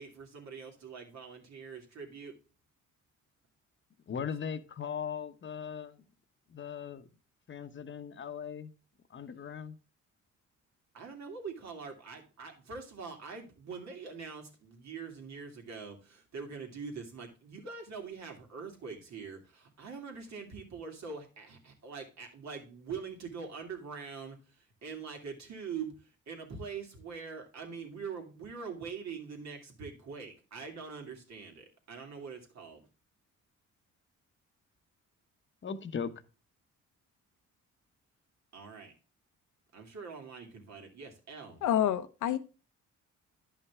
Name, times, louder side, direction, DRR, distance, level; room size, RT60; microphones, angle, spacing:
voice 1, 0.0-2.3 10.9-25.9 26.3-32.8 38.5-38.9 39.7-41.6, right 5 dB, 60° right, 2.7 m, -43 dB
voice 2, 4.1-6.0 6.5-7.1 7.5-8.8 9.1-9.8 35.6-36.1, left 7 dB, 40° left, 1.0 m, -39 dB
voice 3, 41.6-42.4, left 10 dB, 80° left, 0.9 m, -28 dB
10.5 x 5.6 x 3.5 m
cardioid pair, 90°, 30 cm